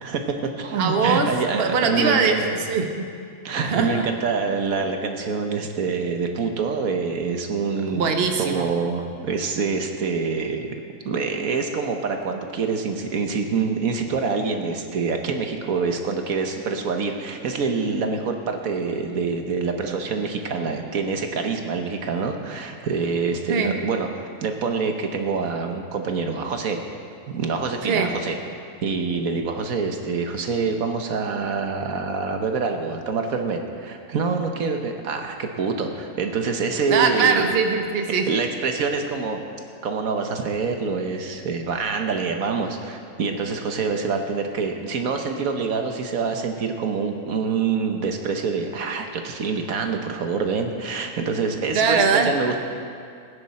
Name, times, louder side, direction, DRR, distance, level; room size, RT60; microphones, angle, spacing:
voice 1, 0.0-2.6 3.4-8.1 8.4-10.7 11.0-24.1 24.4-26.8 27.3-28.4 28.8-37.5 38.1-39.4 39.8-52.6, right 5 dB, 80° right, 4 dB, 1.5 m, -26 dB
voice 2, 0.8-2.4 2.7-3.1 3.6-4.1 7.9-8.7 23.5-23.8 27.8-28.1 36.9-38.3 51.7-52.3, right 5 dB, 50° right, 4 dB, 1.1 m, -22 dB
19.0 x 10.0 x 4.3 m, 2.3 s
omnidirectional pair, 1.4 m